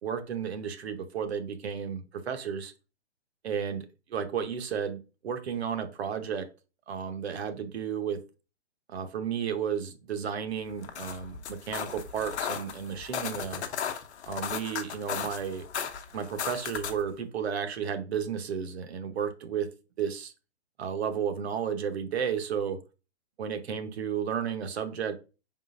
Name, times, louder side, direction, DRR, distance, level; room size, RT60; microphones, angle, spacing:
voice 1, 0.0-2.7 3.4-6.5 6.9-8.2 8.9-13.6 14.3-15.7 16.1-19.7 20.0-20.3 20.8-22.8 23.4-25.1, right 7 dB, 65° right, 0.8 m, -33 dB
sound 1, 10.7-17.1, left 8 dB, 75° left, 0.8 m, -36 dB
4.5 x 3.7 x 2.5 m
hypercardioid pair, 165°, 34 cm